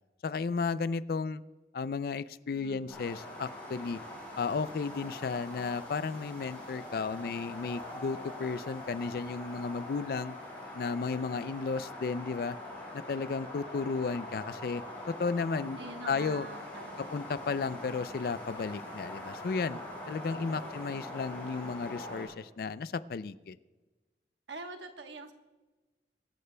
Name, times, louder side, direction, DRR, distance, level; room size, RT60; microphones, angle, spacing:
voice 1, 0.2-1.4 1.7-4.0 4.4-10.3 10.7-12.6 12.9-15.8 16.1-16.5 17.0-19.8 20.1-23.6, left 4 dB, 55° left, 16 dB, 0.4 m, -34 dB
voice 2, 2.5-3.0 15.8-17.2 20.3-21.5 24.5-25.3, right 2 dB, 85° right, 5 dB, 1.1 m, -46 dB
sound 1, 2.9-22.3, left 1 dB, 10° left, 4.9 m, -43 dB
23.5 x 13.5 x 2.2 m, 1.2 s
head